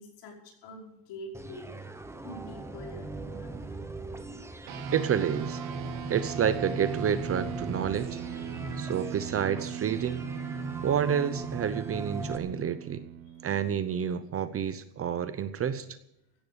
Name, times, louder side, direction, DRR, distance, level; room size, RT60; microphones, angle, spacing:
voice 1, 0.0-1.7 2.2-3.5 13.3-13.4, left 1 dB, 60° left, 1 dB, 5.2 m, -45 dB
sound 1, 1.3-12.4, right 2 dB, 5° right, 1.0 m, -38 dB
sound 2, 4.7-14.4, right 11 dB, 70° right, 1.0 m, -40 dB
voice 2, 4.9-5.6 6.1-8.2 8.8-10.3 10.8-13.0 13.4-15.9, right 8 dB, 30° right, 12 dB, 0.7 m, -29 dB
16.0 x 11.0 x 6.9 m, 0.84 s
cardioid pair, 160°, 48 cm